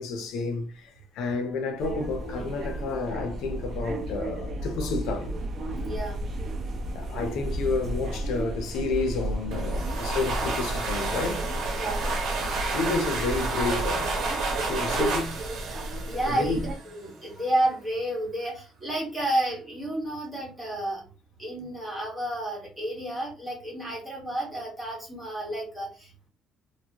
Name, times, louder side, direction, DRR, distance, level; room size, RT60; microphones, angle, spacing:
voice 1, 0.0-5.4 6.9-11.5 12.7-15.3 16.2-16.7, left 3 dB, 80° left, 0.6 m, -30 dB
sound 1, 1.8-16.7, right 1 dB, 40° right, 0.6 m, -33 dB
voice 2, 5.8-6.3 11.7-12.1 14.5-15.0 16.0-21.0 21.4-26.1, right 1 dB, 5° right, 1.4 m, -31 dB
sound 2, 9.5-17.0, right 3 dB, 85° right, 1.0 m, -31 dB
3.0 x 2.4 x 2.8 m
cardioid pair, 175°, 0 cm